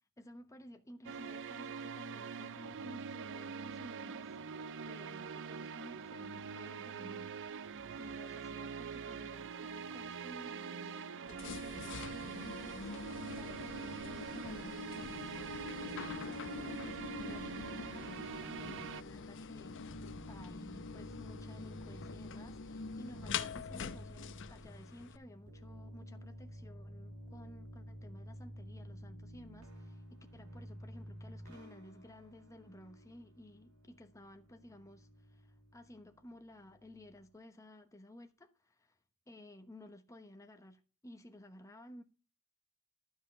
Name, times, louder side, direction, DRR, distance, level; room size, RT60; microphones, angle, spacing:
voice 1, 0.2-4.3 4.8-7.3 8.0-39.0 39.3-42.0, left 1 dB, 15° left, 1.0 m, -55 dB
sound 1, 1.0-19.0, right 5 dB, 55° right, 0.5 m, -44 dB
sound 2, 11.3-25.2, left 5 dB, 55° left, 0.7 m, -45 dB
sound 3, 19.9-37.3, equal, 80° right, 3.5 m, -52 dB
12.5 x 5.5 x 5.4 m
head